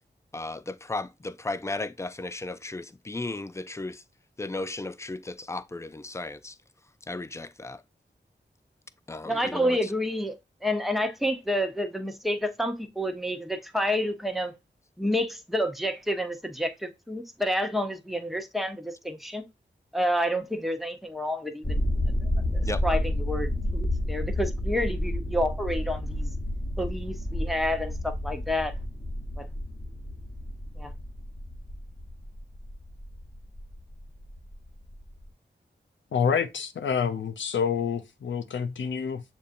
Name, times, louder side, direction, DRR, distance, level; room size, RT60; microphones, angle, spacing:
voice 1, 0.3-4.0 4.4-6.6 7.0-7.8 9.1-9.9 22.7-22.8, left 2 dB, 15° left, 0.4 m, -35 dB
voice 2, 9.3-14.5 15.0-19.4 19.9-21.8 22.5-26.3 26.7-28.7 29.4-29.5 30.8-30.9, equal, ahead, 0.8 m, -29 dB
sound 1, 21.6-35.3, left 1 dB, 30° left, 1.1 m, -31 dB
voice 3, 36.1-39.2, left 6 dB, 90° left, 0.4 m, -27 dB
6.9 x 2.6 x 2.5 m
cardioid pair, 45°, 19 cm